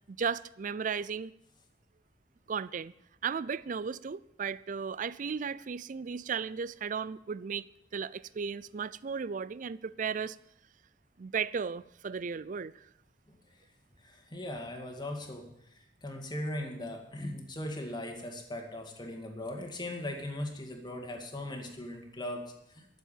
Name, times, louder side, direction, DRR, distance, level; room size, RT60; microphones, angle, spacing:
voice 1, 0.1-1.3 2.5-2.9 3.2-7.6 7.9-10.4 11.2-12.7, right 6 dB, 45° right, 19 dB, 0.4 m, -35 dB
voice 2, 14.0-22.9, left 1 dB, 25° left, 3 dB, 2.1 m, -39 dB
12.5 x 7.4 x 9.1 m, 0.78 s
head